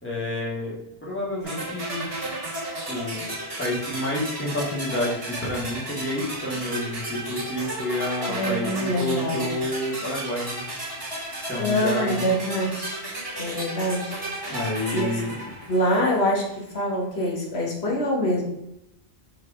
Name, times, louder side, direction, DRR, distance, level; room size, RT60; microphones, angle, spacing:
voice 1, 0.0-0.7 1.0-2.1 2.9-3.3 3.6-8.7 9.0-10.6 11.5-12.3 14.5-15.4, left 1 dB, 10° left, -6 dB, 2.0 m, -29 dB
sound 1, 1.5-16.4, right 1 dB, 35° right, 1.9 m, -34 dB
voice 2, 8.3-9.5 11.6-13.0 13.4-14.2 14.6-15.1 15.7-18.4, equal, 90° left, -1 dB, 1.6 m, -25 dB
4.8 x 4.7 x 4.9 m, 0.85 s
omnidirectional pair, 1.0 m